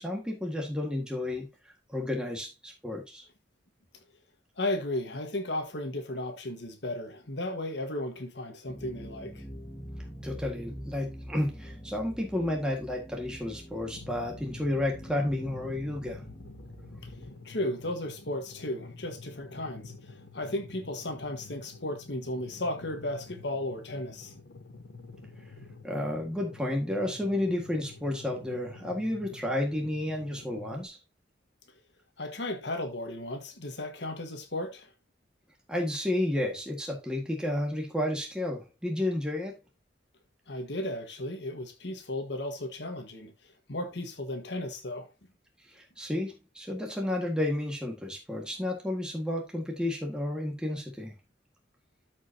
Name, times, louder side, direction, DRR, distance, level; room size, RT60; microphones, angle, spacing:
voice 1, 0.0-3.3 10.2-16.2 25.8-31.0 35.7-39.5 45.7-51.1, left 1 dB, 5° right, 1.7 m, -31 dB
voice 2, 4.6-9.4 17.0-24.3 32.2-34.9 40.5-45.1, left 1 dB, 70° left, 1.5 m, -35 dB
sound 1, 8.7-17.3, equal, 10° left, 1.6 m, -44 dB
sound 2, 13.9-30.8, left 3 dB, 90° left, 1.0 m, -48 dB
13.5 x 5.2 x 2.8 m
head